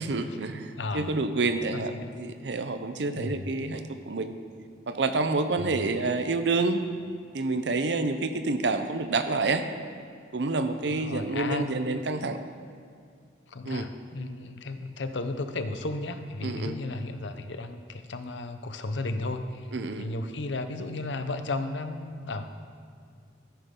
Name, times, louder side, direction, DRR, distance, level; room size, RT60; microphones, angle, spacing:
voice 1, 0.0-1.9 2.2-4.3 4.9-6.8 7.3-9.6 10.3-12.4 13.6-13.9 16.4-16.8 19.7-20.1, right 3 dB, 70° right, 9 dB, 0.6 m, -28 dB
voice 2, 0.8-1.2 1.7-2.1 3.2-3.5 10.9-11.9 13.5-19.7 20.0-22.5, left 2 dB, 85° left, 9 dB, 0.7 m, -34 dB
13.5 x 10.5 x 3.8 m, 2.1 s
head